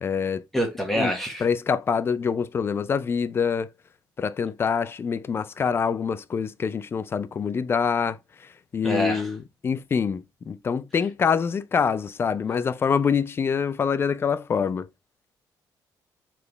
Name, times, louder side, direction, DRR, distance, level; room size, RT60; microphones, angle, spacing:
voice 1, 0.0-0.4 1.0-1.1 1.4-3.7 4.2-14.9, left 6 dB, 30° left, 0.4 m, -25 dB
voice 2, 0.5-1.5 8.8-9.3, equal, 5° left, 1.0 m, -26 dB
4.2 x 3.3 x 2.9 m
cardioid pair, 135°, 8 cm